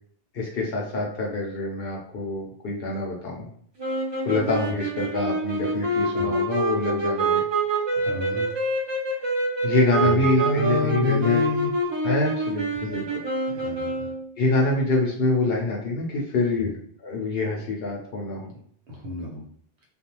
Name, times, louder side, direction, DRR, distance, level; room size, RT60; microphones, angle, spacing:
voice 1, 0.3-3.5 4.2-7.4 9.6-11.4 12.0-13.2 14.4-16.7 17.0-18.5, left 3 dB, 70° left, -2 dB, 0.8 m, -25 dB
sound 1, 3.8-14.3, right 2 dB, 35° right, 0.5 m, -26 dB
voice 2, 6.0-6.3 7.9-8.5 10.0-11.7 12.7-12.9 13.5-14.1 16.6-16.7 18.9-19.4, left 3 dB, 70° right, -2 dB, 1.0 m, -30 dB
2.4 x 2.3 x 2.9 m, 0.62 s
omnidirectional pair, 1.0 m